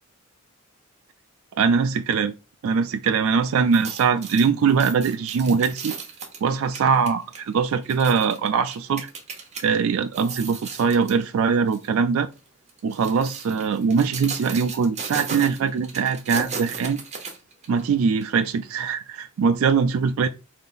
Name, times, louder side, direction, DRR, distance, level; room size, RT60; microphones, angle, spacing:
voice 1, 1.6-2.3 2.6-6.0 6.4-9.1 9.6-12.3 12.8-17.0 17.7-20.3, right 5 dB, 70° right, 0.3 m, -22 dB
sound 1, 3.6-9.6 10.0-11.2 11.7-11.9 12.7-17.8 18.2-18.3, right 5 dB, 30° right, 0.9 m, -36 dB
3.8 x 2.7 x 3.9 m
head